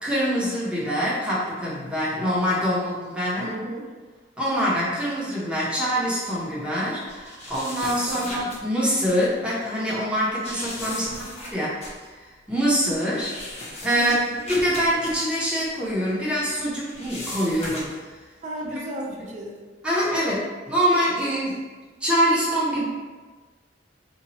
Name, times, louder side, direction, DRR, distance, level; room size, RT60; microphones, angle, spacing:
voice 1, 0.0-3.5 4.4-11.1 11.5-11.8 12.2-14.2 14.5-17.9 18.6-18.8 19.8-21.6 22.0-22.8, equal, 5° right, -7 dB, 0.9 m, -24 dB
voice 2, 3.4-3.9 8.1-8.5 10.9-11.2 13.9-14.5 18.4-19.6, right 1 dB, 40° right, -2 dB, 0.5 m, -35 dB
sound 1, 7.1-8.6 9.1-9.3 10.4-16.4 16.6-18.1, left 1 dB, 35° left, 0.8 m, -37 dB
2.9 x 2.4 x 4.1 m, 1.3 s
head